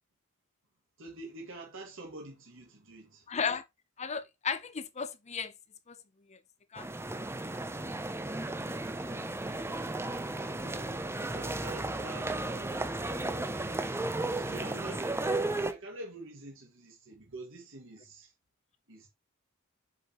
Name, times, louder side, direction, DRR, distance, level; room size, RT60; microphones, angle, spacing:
voice 1, 1.0-3.3 10.4-11.0 11.3-12.9 13.3-15.3 15.7-18.3 18.9-19.1, right 2 dB, 65° right, 2.0 m, -47 dB
voice 2, 3.3-3.6 4.0-5.5 5.9-6.0 6.3-6.4 6.7-6.9, left 6 dB, 35° left, 0.7 m, -34 dB
sound 1, 6.8-15.7, right 2 dB, 10° right, 0.6 m, -34 dB
7.5 x 5.2 x 3.0 m
head